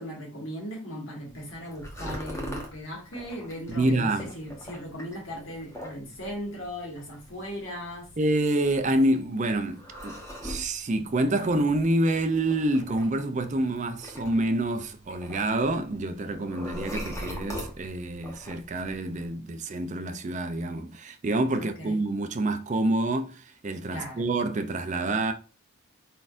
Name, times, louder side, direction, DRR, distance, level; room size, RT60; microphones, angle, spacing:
voice 1, 0.0-8.1 21.6-22.0 23.9-24.2, equal, 70° left, 1.9 m, -38 dB
sound 1, 1.3-19.3, equal, 15° left, 1.0 m, -43 dB
voice 2, 3.7-4.3 8.2-25.3, right 2 dB, 35° right, 0.4 m, -27 dB
4.7 x 4.1 x 2.5 m
head